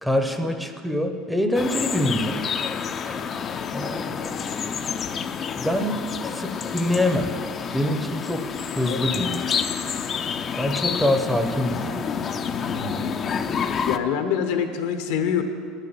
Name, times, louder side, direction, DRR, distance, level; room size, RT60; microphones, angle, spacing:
voice 1, 0.0-2.4 3.7-4.4 4.8-5.0 5.6-7.4 7.7-9.5 10.6-12.1, left 1 dB, ahead, 6 dB, 0.7 m, -25 dB
sound 1, 1.5-14.0, left 6 dB, 30° left, 0.5 m, -29 dB
voice 2, 12.5-13.1 13.8-15.4, left 8 dB, 80° left, 7 dB, 1.1 m, -26 dB
10.0 x 6.7 x 9.2 m, 2.1 s
cardioid pair, 145°, 0 cm